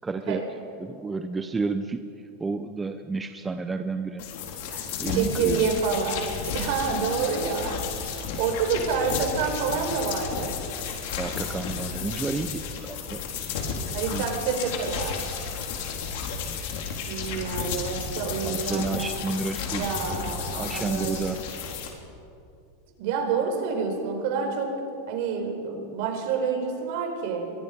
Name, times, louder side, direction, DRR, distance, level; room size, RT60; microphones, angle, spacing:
voice 1, 0.0-0.4 0.8-2.1 2.4-4.2 5.0-5.7 11.1-13.2 14.1-14.2 16.4-16.6 18.4-20.0 20.6-21.4, right 4 dB, 10° right, 8 dB, 0.7 m, -31 dB
sound 1, 4.2-21.9, left 6 dB, 60° left, 3.8 m, -33 dB
voice 2, 4.7-10.6 13.9-15.4 17.0-19.1 19.7-21.2 23.0-24.8 25.1-27.5, right 5 dB, 55° right, 4 dB, 4.6 m, -28 dB
29.0 x 23.5 x 5.3 m, 2.6 s
supercardioid pair, 160°, 0 cm